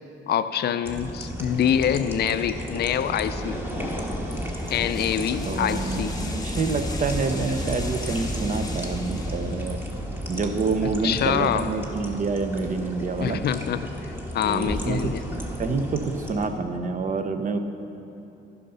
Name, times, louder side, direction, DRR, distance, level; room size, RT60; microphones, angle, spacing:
voice 1, 0.3-4.0 4.7-6.2 10.8-11.7 13.2-15.2, left 9 dB, 55° left, 12 dB, 0.4 m, -26 dB
sound 1, 0.8-16.5, equal, 10° right, 1.3 m, -32 dB
sound 2, 4.3-9.9, left 2 dB, 20° left, 1.0 m, -40 dB
voice 2, 5.4-9.8 10.3-13.4 14.4-15.1 15.6-17.6, right 4 dB, 40° right, 8 dB, 0.6 m, -27 dB
11.0 x 5.7 x 5.5 m, 2.9 s
cardioid pair, 90°, 20 cm